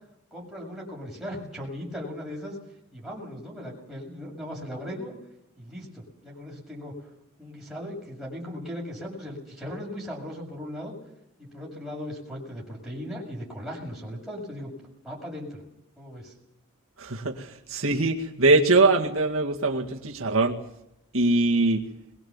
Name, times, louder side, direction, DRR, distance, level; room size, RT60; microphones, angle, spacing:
voice 1, 0.3-2.6 2.9-5.1 5.6-7.1 7.4-10.9 11.4-14.7 15.0-15.6 16.0-16.3, equal, ahead, -4 dB, 7.2 m, -38 dB
voice 2, 17.0-20.6 21.1-21.9, right 3 dB, 75° right, 0 dB, 2.1 m, -22 dB
23.0 x 19.0 x 7.4 m, 0.86 s
head